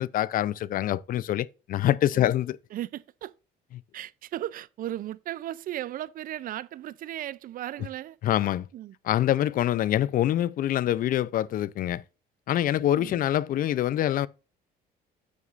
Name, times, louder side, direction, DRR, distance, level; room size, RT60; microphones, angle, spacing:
voice 1, 0.0-2.6 8.2-8.7 9.0-12.0 12.5-14.3, left 12 dB, 55° left, 0.5 m, -25 dB
voice 2, 2.7-3.3 3.9-8.2 8.7-8.9 12.8-13.2, right 13 dB, 55° right, 0.5 m, -36 dB
9.5 x 8.4 x 2.5 m
cardioid pair, 110°, 17 cm